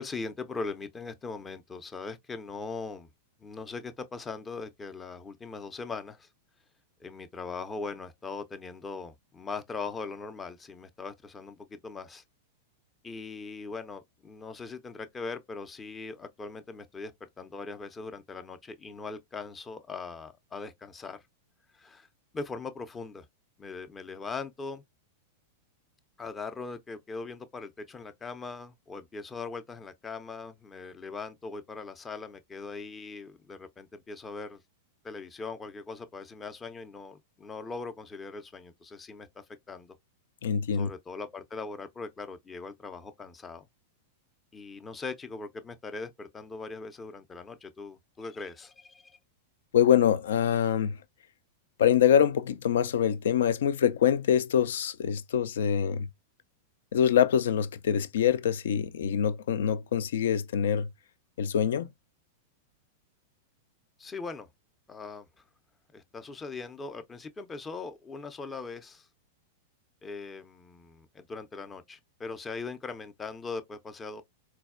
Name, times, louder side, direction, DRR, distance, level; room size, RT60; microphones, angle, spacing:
voice 1, 0.0-3.1 3.4-6.3 7.0-12.2 13.0-21.2 21.7-22.1 22.3-23.3 23.6-24.8 26.2-34.6 35.0-40.0 40.7-43.7 44.5-49.2 64.0-64.5 64.9-65.3 65.9-69.1 70.0-74.2, left 4 dB, 20° left, 0.5 m, -40 dB
voice 2, 40.4-40.9 49.7-51.0 51.8-56.1 56.9-60.9 61.4-61.9, left 9 dB, 65° left, 0.4 m, -25 dB
4.0 x 2.2 x 2.4 m
figure-of-eight pair, 95°, 0 cm